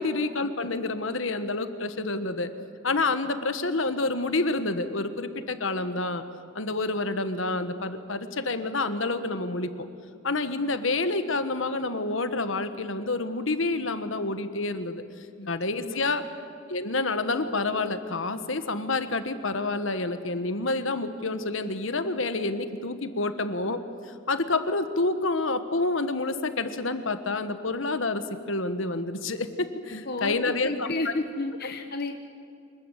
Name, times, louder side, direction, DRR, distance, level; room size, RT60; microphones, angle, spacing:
voice 1, 0.0-2.5 2.8-6.2 6.5-9.9 10.2-15.0 15.5-16.2 16.7-23.8 24.1-30.9, left 3 dB, 70° left, 10 dB, 1.4 m, -28 dB
voice 2, 15.4-16.0 29.9-32.1, left 2 dB, 50° left, 5 dB, 1.0 m, -32 dB
25.0 x 20.5 x 8.2 m, 2.5 s
head